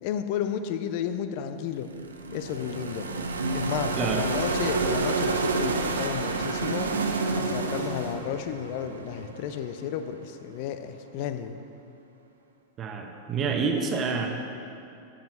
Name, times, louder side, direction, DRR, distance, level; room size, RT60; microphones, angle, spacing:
voice 1, 0.0-1.9 2.3-3.1 3.5-6.9 7.3-11.6, left 9 dB, 45° left, 10 dB, 0.6 m, -32 dB
sound 1, 1.7-9.7, right 3 dB, 70° right, 0.7 m, -29 dB
sound 2, 2.4-9.4, right 1 dB, 90° right, 2.0 m, -47 dB
voice 2, 4.0-4.3 12.8-14.3, right 5 dB, 30° right, 3 dB, 1.1 m, -28 dB
13.5 x 7.4 x 4.3 m, 2.6 s
figure-of-eight pair, 90°, 0 cm